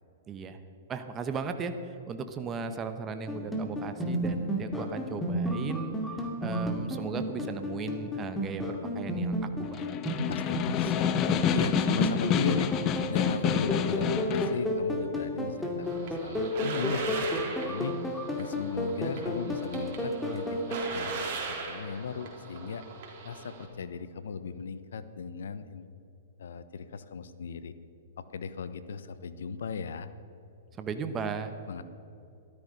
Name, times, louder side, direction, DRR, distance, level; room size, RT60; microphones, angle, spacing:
voice 1, 0.3-0.6 0.9-6.0 6.4-10.4 30.8-31.6, right 5 dB, 25° right, 8 dB, 1.0 m, -36 dB
sound 1, 3.3-20.8, equal, 5° left, 2.2 m, -32 dB
Snare drum, 9.6-14.6, left 8 dB, 35° left, 0.9 m, -28 dB
voice 2, 10.3-12.7 13.1-18.0 18.4-22.8 23.2-25.9 26.4-27.7 28.2-30.1 31.7-31.8, left 6 dB, 75° left, 13 dB, 0.9 m, -37 dB
sound 2, 15.8-23.7, right 4 dB, 50° right, 3.4 m, -39 dB
13.5 x 13.0 x 5.4 m, 2.8 s
hypercardioid pair, 125°, 0 cm